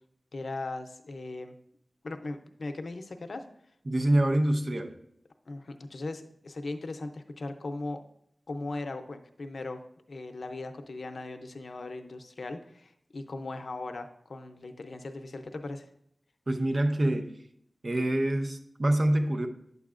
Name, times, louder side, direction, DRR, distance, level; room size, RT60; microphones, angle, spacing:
voice 1, 0.3-1.5 2.0-3.5 5.5-8.0 8.5-15.9, left 2 dB, 80° left, 7 dB, 0.6 m, -38 dB
voice 2, 3.9-4.9 16.5-17.3 17.8-19.5, right 1 dB, 60° right, 6 dB, 0.7 m, -26 dB
9.4 x 6.8 x 2.5 m, 0.70 s
cardioid pair, 45°, 0 cm